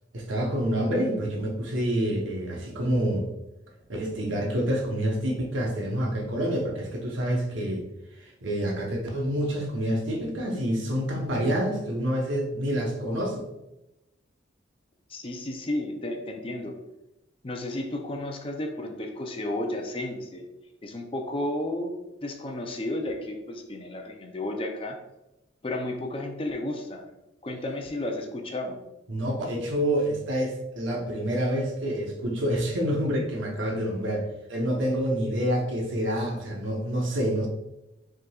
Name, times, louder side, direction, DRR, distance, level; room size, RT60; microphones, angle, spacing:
voice 1, 0.1-3.3 3.9-7.9 8.2-13.5 29.1-37.5, equal, 80° right, 0 dB, 1.0 m, -27 dB
voice 2, 15.1-16.8 17.4-20.4 20.8-21.9 22.2-25.0 25.6-27.1 27.4-28.8, left 1 dB, 30° left, 3 dB, 0.5 m, -32 dB
5.5 x 3.7 x 2.3 m, 0.94 s
head